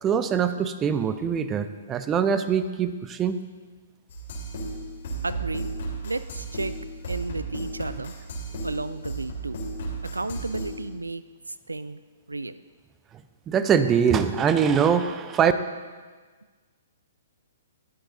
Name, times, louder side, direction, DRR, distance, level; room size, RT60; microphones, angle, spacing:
voice 1, 0.0-3.4 13.5-15.5, right 7 dB, 20° right, 11 dB, 0.6 m, -23 dB
sound 1, 4.1-10.7, right 2 dB, 55° left, 3.5 m, -34 dB
voice 2, 5.2-5.7 6.0-6.7 7.1-8.1 8.6-9.6 10.1-11.2 11.5-12.0 12.3-12.6, right 2 dB, 85° right, 15 dB, 0.3 m, -32 dB
20.5 x 7.9 x 2.7 m, 1.4 s
figure-of-eight pair, 120°, 0 cm